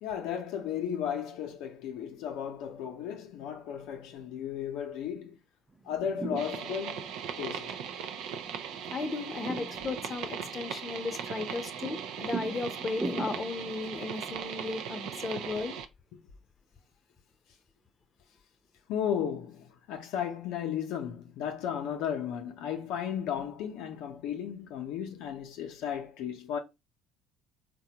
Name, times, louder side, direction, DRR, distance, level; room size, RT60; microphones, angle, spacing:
voice 1, 0.0-5.4 5.8-7.1 7.4-7.7 18.9-26.6, left 8 dB, 75° left, 0.6 m, -34 dB
sound 1, 5.7-15.5, right 3 dB, 20° right, 0.7 m, -42 dB
sound 2, 6.4-15.9, right 8 dB, 75° right, 0.4 m, -39 dB
voice 2, 8.9-15.7, left 3 dB, 35° left, 0.6 m, -35 dB
3.9 x 2.2 x 2.8 m
hypercardioid pair, 65°, 0 cm